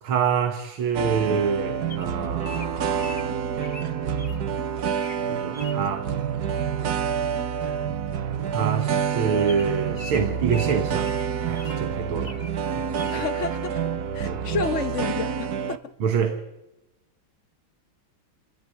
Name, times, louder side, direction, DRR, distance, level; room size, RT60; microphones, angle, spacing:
voice 1, 0.0-3.5 5.3-6.1 8.5-11.1 11.5-12.4 12.8-13.2 14.2-14.4 16.0-16.4, right 6 dB, 80° right, 2.3 m, -27 dB
sound 1, 0.9-15.8, right 7 dB, 55° right, 1.4 m, -27 dB
Bird vocalization bird call bird song, 1.9-4.4 4.9-5.2 5.5-5.8 7.3-7.5 7.8-7.9 8.2-8.3 8.8-8.9 9.4-11.8 12.2-12.6 13.0-13.2, left 3 dB, 20° left, 1.5 m, -42 dB
voice 2, 13.1-13.8 14.1-15.8, left 5 dB, 45° left, 1.2 m, -30 dB
29.5 x 14.5 x 9.8 m
omnidirectional pair, 2.2 m